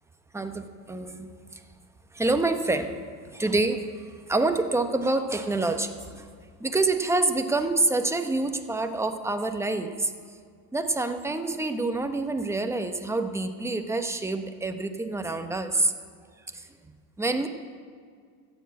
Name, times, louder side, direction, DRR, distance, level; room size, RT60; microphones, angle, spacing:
voice 1, 0.3-1.6 2.1-3.0 3.3-6.3 6.6-10.1 10.7-15.9 16.5-17.5, right 2 dB, 5° right, 7 dB, 0.9 m, -27 dB
13.5 x 8.1 x 8.6 m, 2.1 s
supercardioid pair, 110°, 47 cm